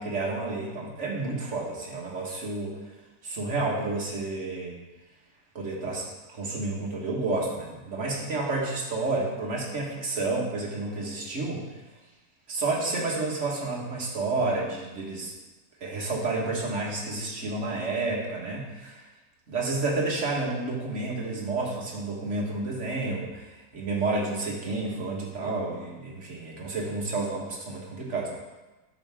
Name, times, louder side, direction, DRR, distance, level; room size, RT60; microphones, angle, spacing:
voice 1, 0.0-2.8 3.2-4.8 5.6-11.7 12.5-15.3 15.8-19.0 19.5-28.3, right 3 dB, 45° right, -2 dB, 1.9 m, -30 dB
10.0 x 7.1 x 3.7 m, 1.1 s
omnidirectional pair, 1.9 m